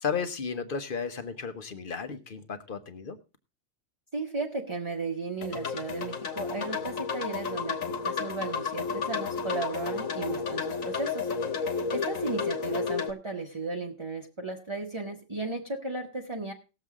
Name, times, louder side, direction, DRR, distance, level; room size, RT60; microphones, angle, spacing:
voice 1, 0.0-3.2, left 6 dB, 40° left, 9 dB, 1.1 m, -34 dB
voice 2, 4.1-16.5, right 3 dB, 20° right, 0 dB, 1.0 m, -35 dB
sound 1, 5.4-13.1, left 5 dB, 65° left, 1.6 m, -32 dB
18.5 x 7.3 x 3.6 m, 0.30 s
omnidirectional pair, 1.6 m